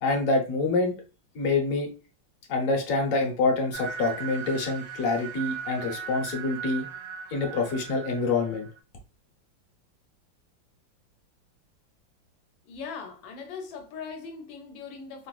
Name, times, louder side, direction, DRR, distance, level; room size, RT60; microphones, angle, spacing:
voice 1, 0.0-0.9 1.3-1.9 2.5-6.9 7.3-8.7, left 3 dB, 50° left, 1.1 m, -26 dB
sound 1, 3.7-8.8, right 7 dB, 85° right, 1.6 m, -38 dB
voice 2, 12.7-15.3, left 5 dB, 85° left, 1.5 m, -40 dB
3.9 x 2.4 x 2.3 m
omnidirectional pair, 2.1 m